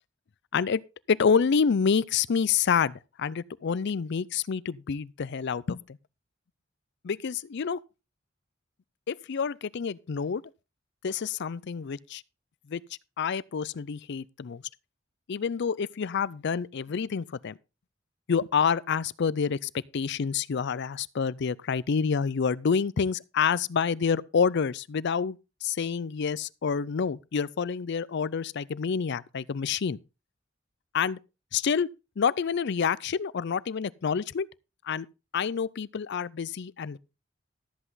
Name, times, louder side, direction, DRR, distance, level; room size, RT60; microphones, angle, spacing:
voice 1, 1.1-5.8 7.0-7.8 9.1-10.4 11.0-12.2 12.7-12.8 13.2-14.6 15.3-17.6 18.3-30.0 30.9-31.2 31.5-31.9 32.2-34.5 34.8-35.1 35.3-37.0, left 6 dB, 60° left, 0.5 m, -28 dB
13.5 x 8.0 x 3.9 m
head